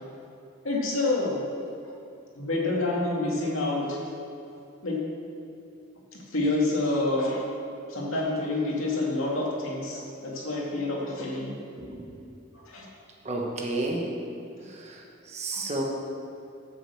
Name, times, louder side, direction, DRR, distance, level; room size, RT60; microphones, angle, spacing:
voice 1, 0.6-1.4 2.4-4.0 4.8-5.0 6.3-7.4 7.9-11.5 12.5-12.9 15.5-15.6, left 2 dB, 85° left, -3 dB, 2.3 m, -28 dB
voice 2, 13.2-14.1 15.3-15.8, right 2 dB, 35° right, -1 dB, 1.3 m, -30 dB
8.7 x 6.8 x 7.1 m, 2.7 s
head